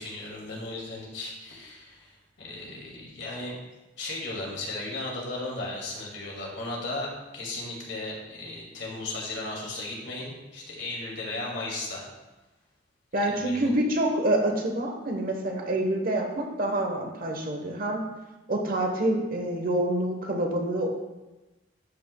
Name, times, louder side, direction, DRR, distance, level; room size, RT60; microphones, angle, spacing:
voice 1, 0.0-3.6 4.0-12.1 13.2-13.7, left 2 dB, 70° left, -3 dB, 2.2 m, -36 dB
voice 2, 13.1-18.0 18.5-20.9, right 1 dB, 50° right, 3 dB, 1.0 m, -27 dB
12.5 x 5.8 x 2.2 m, 1.1 s
head